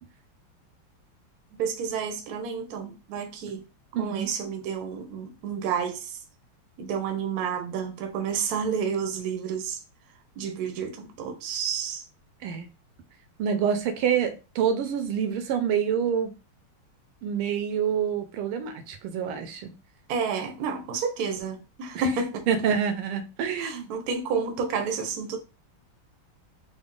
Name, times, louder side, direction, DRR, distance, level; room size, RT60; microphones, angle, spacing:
voice 1, 1.6-3.6 4.0-6.2 6.8-9.8 10.4-12.0 20.1-22.5 23.6-25.4, right 6 dB, 65° right, 1.0 m, -30 dB
voice 2, 3.9-4.3 12.4-12.7 13.4-16.3 17.2-19.7 21.9-22.0 22.5-23.9, right 7 dB, 85° right, 1.5 m, -27 dB
3.9 x 2.0 x 3.7 m
omnidirectional pair, 2.4 m